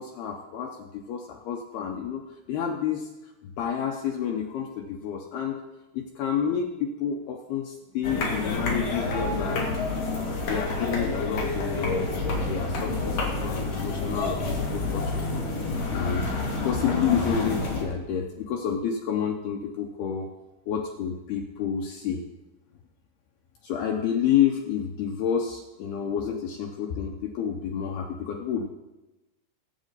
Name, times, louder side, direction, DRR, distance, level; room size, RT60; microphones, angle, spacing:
voice 1, 0.0-3.1 3.4-5.6 5.9-9.7 10.4-15.2 15.9-16.3 16.6-20.3 20.7-22.2 23.6-28.7, left 8 dB, 80° left, 2 dB, 2.3 m, -29 dB
sound 1, 8.0-17.8, left 3 dB, 45° left, 3.6 m, -28 dB
22.0 x 8.4 x 4.1 m, 1.0 s
omnidirectional pair, 5.8 m